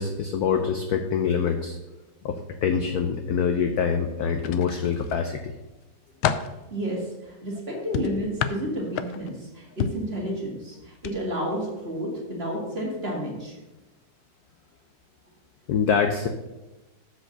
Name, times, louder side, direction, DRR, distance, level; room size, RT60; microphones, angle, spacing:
voice 1, 0.0-1.8 2.2-5.5 7.7-7.8 15.7-16.3, left 6 dB, 70° left, 6 dB, 0.9 m, -25 dB
sound 1, 4.4-5.2 5.7-6.6 7.9-9.4 9.8-10.1 10.9-11.1 11.5-11.7, left 9 dB, 85° left, 1.4 m, -29 dB
voice 2, 6.7-13.6, equal, 30° right, -2 dB, 2.1 m, -31 dB
7.7 x 5.0 x 6.5 m, 1.0 s
omnidirectional pair, 2.2 m